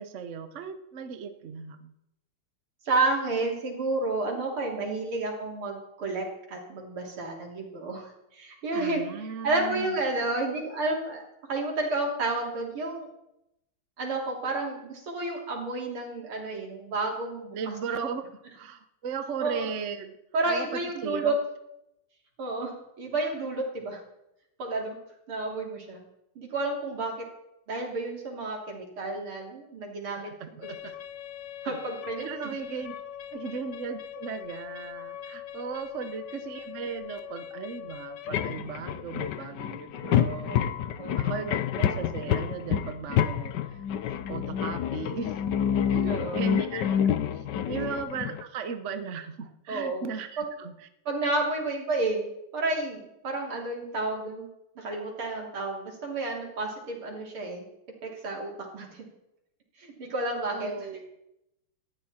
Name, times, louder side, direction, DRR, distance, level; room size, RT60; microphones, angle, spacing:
voice 1, 0.0-1.9 8.7-10.0 17.5-18.2 18.5-20.2 20.4-21.3 30.1-30.9 31.7-31.8 32.2-33.0 33.3-40.6 41.2-43.8 44.3-45.3 45.9-50.8 60.5-61.1, right 6 dB, 50° right, 9 dB, 1.0 m, -37 dB
voice 2, 2.9-11.2 11.5-13.1 14.0-17.7 19.4-19.7 20.3-21.4 22.4-24.0 24.6-25.0 25.3-26.0 26.4-27.1 27.7-30.3 30.6-30.7 31.6-32.5 41.0-41.2 46.0-46.5 47.7-47.8 49.7-50.0 50.4-50.5 51.1-52.3 52.5-54.5 54.8-57.7 58.0-59.1 59.8-60.8, right 2 dB, 70° right, 0 dB, 4.1 m, -31 dB
sound 1, 30.6-48.4, left 9 dB, 65° left, 1.2 m, -30 dB
19.0 x 13.5 x 4.4 m, 0.84 s
omnidirectional pair, 2.4 m